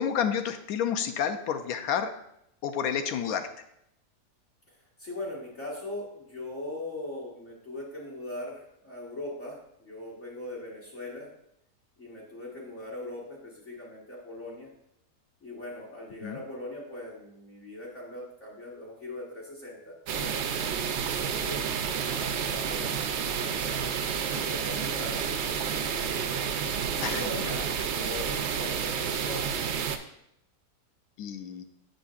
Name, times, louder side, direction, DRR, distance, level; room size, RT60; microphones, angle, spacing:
voice 1, 0.0-2.1 2.6-3.5 16.2-16.4 27.0-27.7 31.2-31.6, left 8 dB, 70° left, 8 dB, 1.0 m, -30 dB
voice 2, 4.7-11.3 12.0-14.7 15.4-21.7 22.1-23.9 24.2-26.4 26.9-29.5, left 1 dB, 45° left, -5 dB, 1.6 m, -40 dB
sound 1, 20.1-30.0, right 7 dB, 80° right, 0.6 m, -30 dB
7.7 x 6.3 x 2.4 m, 0.78 s
omnidirectional pair, 1.7 m